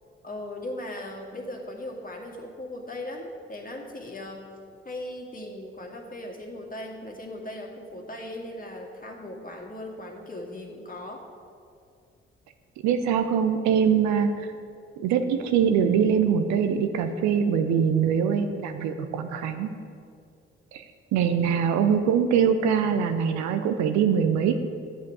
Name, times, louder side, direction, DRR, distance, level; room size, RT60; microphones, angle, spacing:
voice 1, 0.2-4.5 4.8-11.3 13.8-14.1 21.4-21.6, left 1 dB, 25° left, 1 dB, 2.1 m, -38 dB
voice 2, 12.8-14.5 15.0-19.7 20.7-20.8 21.1-24.6, right 7 dB, 65° right, 8 dB, 0.7 m, -23 dB
12.0 x 8.3 x 4.8 m, 2.4 s
figure-of-eight pair, 40°, 31 cm